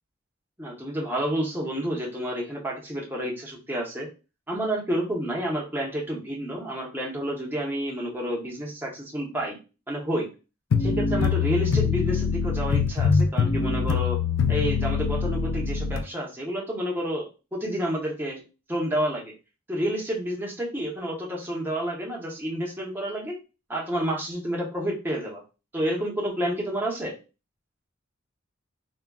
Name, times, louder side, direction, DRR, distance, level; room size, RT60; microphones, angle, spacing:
voice 1, 0.6-4.1 4.5-9.6 9.9-10.3 10.8-14.2 14.5-18.4 18.7-19.3 19.7-23.4 23.7-25.4 25.7-27.2, equal, 10° right, -3 dB, 0.7 m, -29 dB
sound 1, 10.7-16.0, left 5 dB, 70° left, 0.4 m, -24 dB
3.5 x 2.2 x 2.2 m, 0.31 s
head